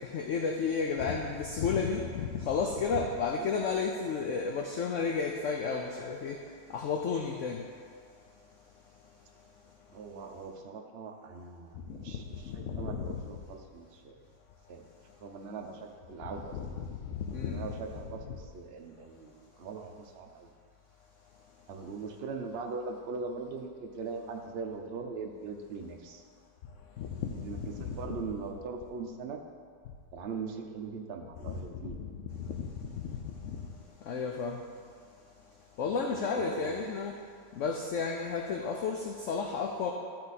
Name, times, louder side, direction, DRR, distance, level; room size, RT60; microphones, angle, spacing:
voice 1, 0.1-6.4 6.7-7.6 12.5-13.1 16.5-16.9 17.3-17.6 27.0-27.1 27.7-27.8 31.5-31.6 32.6-32.7 33.0-33.2 34.1-34.6 35.8-37.1 37.6-39.9, left 5 dB, 65° left, 2 dB, 0.7 m, -32 dB
voice 2, 9.9-14.2 14.7-14.8 15.2-16.6 17.3-20.5 21.7-26.2 27.4-29.4 30.1-32.0 36.1-36.8, right 4 dB, 55° right, 3 dB, 0.7 m, -41 dB
12.0 x 4.4 x 4.1 m, 2.1 s
omnidirectional pair, 1.8 m